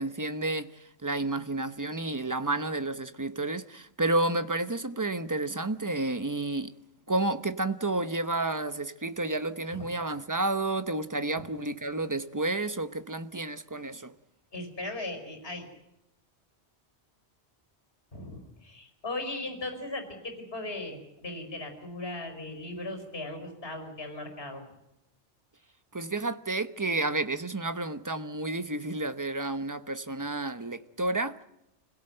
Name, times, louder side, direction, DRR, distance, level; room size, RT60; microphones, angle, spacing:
voice 1, 0.0-6.7 7.1-14.1 25.9-31.4, right 2 dB, 20° right, 0.9 m, -31 dB
voice 2, 14.5-15.7 18.1-24.6, left 2 dB, 60° left, 5.4 m, -38 dB
27.0 x 17.0 x 7.9 m
omnidirectional pair, 1.2 m